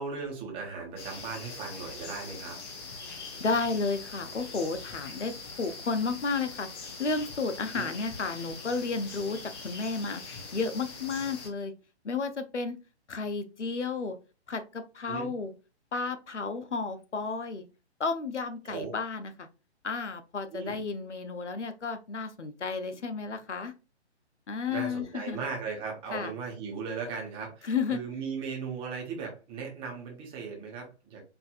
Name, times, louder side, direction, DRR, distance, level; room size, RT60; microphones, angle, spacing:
voice 1, 0.0-2.6 7.7-7.9 15.1-15.3 18.6-18.9 20.5-20.8 24.7-31.2, right 5 dB, 15° right, -1 dB, 0.9 m, -37 dB
sound 1, 1.0-11.5, left 4 dB, 25° left, 0.6 m, -43 dB
voice 2, 3.4-6.7 7.0-10.2 10.5-11.7 12.0-12.8 13.1-14.1 14.5-15.5 15.9-17.6 18.0-19.5 19.8-23.7 24.5-25.4 26.1-26.3 27.6-28.0, left 4 dB, 90° left, 9 dB, 0.7 m, -32 dB
4.6 x 2.5 x 2.4 m, 0.32 s
figure-of-eight pair, 135°, 34 cm